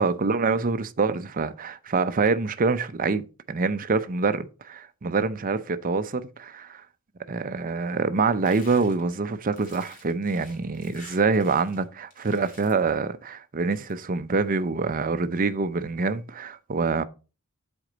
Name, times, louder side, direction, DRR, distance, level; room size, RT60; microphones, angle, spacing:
voice 1, 0.0-6.8 7.3-17.0, right 4 dB, 40° right, 0.6 m, -25 dB
sound 1, 8.5-11.8 12.1-12.9 13.6-14.0, left 3 dB, 40° left, 2.5 m, -50 dB
7.9 x 4.4 x 5.0 m
head